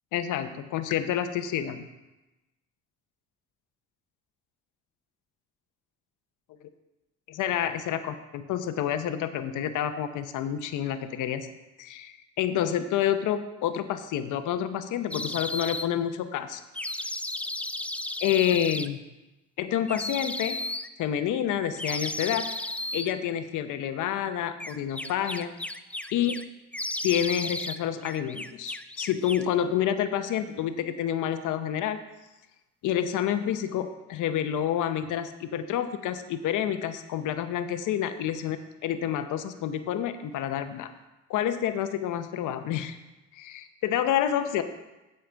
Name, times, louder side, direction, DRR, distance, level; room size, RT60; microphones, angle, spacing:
voice 1, 0.1-1.9 7.3-11.5 11.8-16.6 18.2-19.0 19.6-20.6 21.0-22.5 22.9-25.5 26.1-26.4 27.0-32.0 32.8-38.6 38.8-40.9 41.3-43.0 43.3-44.6, left 10 dB, 85° left, 10 dB, 0.8 m, -28 dB
sound 1, 15.1-15.9 16.7-18.9 19.9-20.9 21.8-23.1 24.6-26.4 26.7-27.8 28.0-29.5, left 1 dB, 5° left, 0.3 m, -34 dB
8.7 x 7.7 x 4.5 m, 1.0 s
cardioid pair, 90°, 30 cm